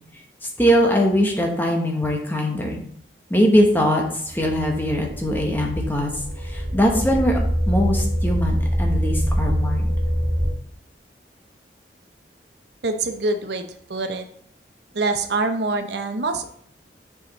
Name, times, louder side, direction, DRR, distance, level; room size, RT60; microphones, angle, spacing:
voice 1, 0.6-2.8 3.3-4.0 4.3-6.1 6.5-7.4 7.7-9.9, equal, 10° left, 1 dB, 1.0 m, -21 dB
sound 1, 4.3-10.5, equal, 50° right, 2.3 m, -24 dB
voice 2, 12.8-14.3 14.9-16.5, right 3 dB, 70° right, 6 dB, 0.7 m, -25 dB
6.6 x 5.0 x 4.0 m, 0.62 s
head